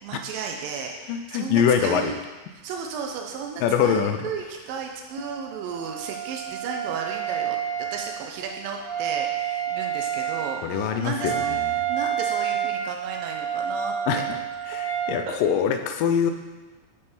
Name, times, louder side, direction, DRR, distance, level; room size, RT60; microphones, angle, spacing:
voice 1, 0.0-2.1 2.6-11.6 11.9-14.2 15.3-15.4, right 6 dB, 90° right, 2 dB, 2.4 m, -34 dB
voice 2, 1.1-2.1 3.6-4.3 10.6-11.8 14.1-14.4 14.7-16.3, left 7 dB, 85° left, 6 dB, 2.2 m, -24 dB
Wind instrument woodwind instrument, 5.1-15.1, right 9 dB, 15° left, 1.2 m, -29 dB
7.2 x 4.8 x 4.4 m, 1.2 s
omnidirectional pair, 3.9 m